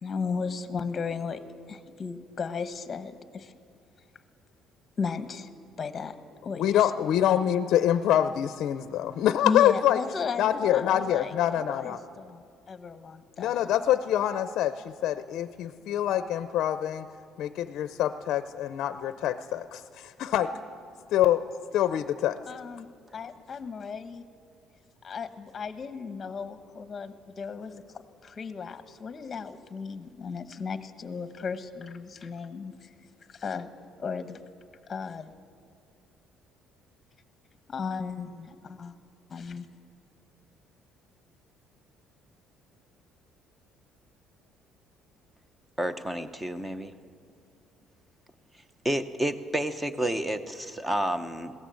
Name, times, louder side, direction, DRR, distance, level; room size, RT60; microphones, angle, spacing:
voice 1, 0.0-1.4 1.7-3.5 5.0-5.5 5.8-6.1 6.4-6.9 9.4-13.7 22.5-24.2 25.0-27.8 28.2-32.9 33.3-33.7 34.0-34.4 34.9-35.3 37.7-39.0 39.3-39.7, left 5 dB, 25° left, 10 dB, 1.1 m, -35 dB
voice 2, 6.6-10.0 10.4-12.0 13.4-17.1 17.4-20.5 21.1-21.4 21.7-22.4, left 11 dB, 55° left, 12 dB, 0.6 m, -25 dB
voice 3, 45.8-46.9 48.8-51.5, right 1 dB, 10° right, 11 dB, 0.8 m, -30 dB
20.5 x 17.0 x 7.7 m, 2.2 s
cardioid pair, 155°, 0 cm